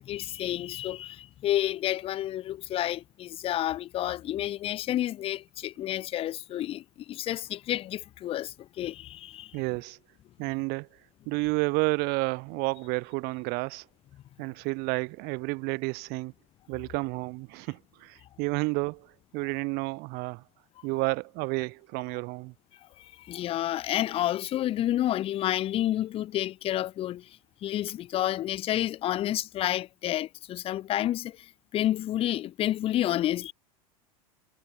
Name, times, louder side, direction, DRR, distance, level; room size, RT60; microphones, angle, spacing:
voice 1, 0.0-9.6 23.0-33.5, left 13 dB, 30° left, 0.4 m, -30 dB
voice 2, 9.5-10.0 10.4-10.9 11.3-13.8 14.4-16.3 16.7-19.1 19.3-20.4 20.8-22.5, right 27 dB, 55° right, 1.6 m, -30 dB
hypercardioid pair, 90°, 19 cm